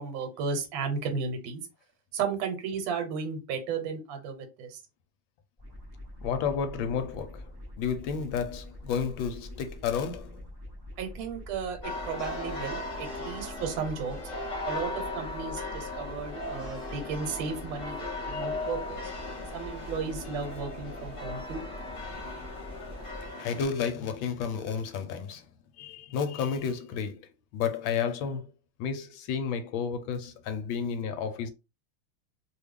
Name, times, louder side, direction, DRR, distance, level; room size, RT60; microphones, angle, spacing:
voice 1, 0.0-1.6 2.1-4.8 11.0-14.2 14.6-18.0 18.3-19.0 19.5-21.6, right 5 dB, 70° right, 1.5 m, -34 dB
sound 1, 5.6-23.3, left 1 dB, 25° right, 0.4 m, -45 dB
voice 2, 6.2-7.5 7.8-10.5 18.3-18.5 23.4-25.4 25.8-28.5 28.8-31.5, left 6 dB, 75° left, 1.3 m, -31 dB
sound 2, 11.8-23.6, left 2 dB, 45° left, 1.2 m, -37 dB
3.2 x 2.3 x 3.4 m
omnidirectional pair, 2.3 m